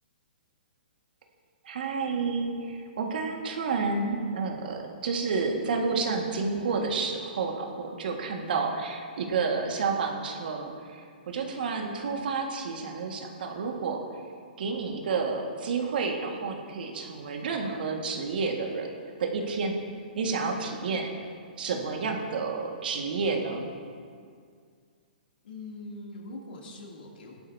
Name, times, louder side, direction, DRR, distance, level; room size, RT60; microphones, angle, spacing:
voice 1, 1.6-14.0 14.6-18.9 19.2-19.8 20.1-21.1 21.6-23.7, right 4 dB, 65° right, 2 dB, 1.8 m, -30 dB
voice 2, 25.4-27.4, left 2 dB, 75° left, -2 dB, 2.9 m, -42 dB
17.5 x 11.5 x 2.8 m, 2.1 s
hypercardioid pair, 160°, 5 cm